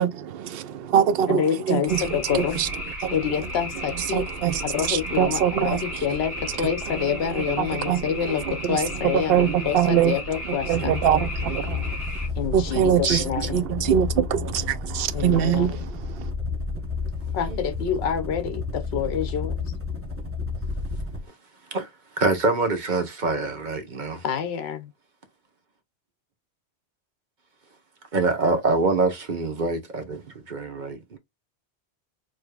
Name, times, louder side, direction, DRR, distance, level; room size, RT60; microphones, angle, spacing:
voice 1, 0.0-2.7 3.0-3.5 3.8-6.1 6.4-6.5 6.8-12.0 12.5-16.3, right 9 dB, 65° right, 0.8 m, -24 dB
voice 2, 1.3-2.6 3.1-4.2 4.6-6.3 6.6-8.4 8.7-11.0 12.4-13.9 15.1-15.7 17.3-19.5 24.2-24.9, left 8 dB, 65° left, 1.0 m, -27 dB
sound 1, 1.9-12.3, left 1 dB, 25° left, 3.0 m, -34 dB
sound 2, 10.6-21.3, left 4 dB, 10° right, 1.0 m, -31 dB
voice 3, 13.1-13.5 17.5-17.6 21.7-24.2 28.1-31.2, right 3 dB, 45° right, 1.2 m, -25 dB
5.0 x 3.1 x 2.3 m
omnidirectional pair, 1.1 m